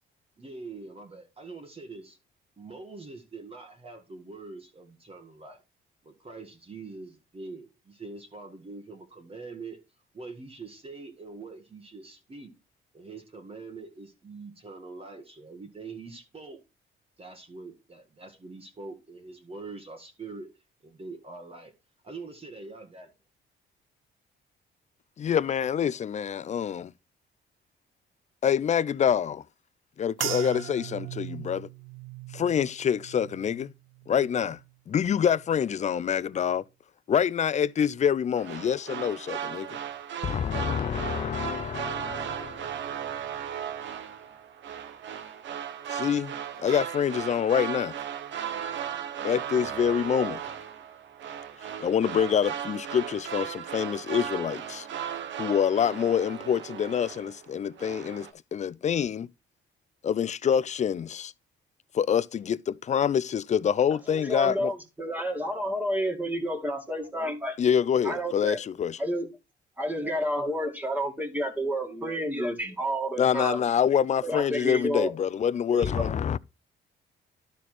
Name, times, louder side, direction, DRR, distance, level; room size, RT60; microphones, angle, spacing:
voice 1, 0.4-2.2 2.6-5.6 6.0-9.8 10.1-12.5 12.9-16.6 17.2-20.5 20.8-21.7 22.0-23.1, right 3 dB, 30° right, 1.7 m, -43 dB
voice 2, 25.2-26.9 28.4-29.4 30.0-31.7 32.3-33.7 34.1-34.6 34.9-36.6 37.1-39.7 40.2-42.8 45.9-46.3 46.6-47.9 49.2-50.4 51.8-54.9 55.4-59.3 60.0-61.3 61.9-64.7 67.6-69.0 73.2-76.4, left 8 dB, 35° left, 0.4 m, -26 dB
sound 1, 30.2-34.7 35.1-35.7 36.3-36.5, right 13 dB, 85° right, 0.7 m, -39 dB
sound 2, 38.4-57.5 57.8-58.3, right 9 dB, 70° right, 1.1 m, -36 dB
voice 3, 64.1-67.6 68.0-68.6 69.0-69.3 69.8-73.6 74.2-75.1 75.7-76.1, equal, 10° right, 2.2 m, -30 dB
12.0 x 4.1 x 4.5 m
cardioid pair, 90°, 20 cm